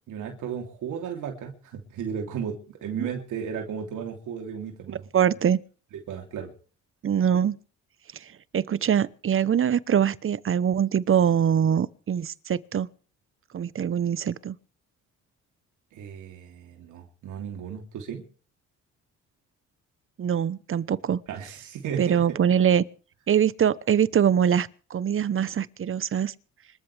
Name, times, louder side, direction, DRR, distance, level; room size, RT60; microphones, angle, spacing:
voice 1, 0.1-5.1 6.1-6.5 15.9-18.2 21.3-22.4, right 7 dB, 80° right, 3.2 m, -35 dB
voice 2, 4.9-5.6 7.0-7.6 8.1-8.3 8.5-12.9 13.5-14.6 20.2-21.2 22.0-22.8 23.3-26.3, right 8 dB, 45° right, 0.9 m, -23 dB
26.0 x 13.5 x 3.4 m
cardioid pair, 90°, 30 cm